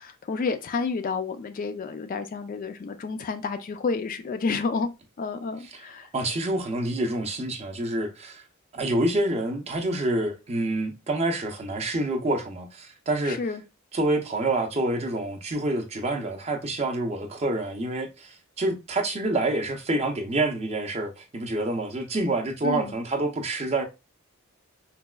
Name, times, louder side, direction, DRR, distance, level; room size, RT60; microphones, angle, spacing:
voice 1, 0.0-4.9 5.2-6.1 13.2-13.6 22.6-22.9, left 4 dB, 40° left, 0.3 m, -30 dB
voice 2, 6.1-8.4 8.7-13.4 13.9-23.8, right 2 dB, 30° right, 0.5 m, -27 dB
4.0 x 2.2 x 2.2 m
head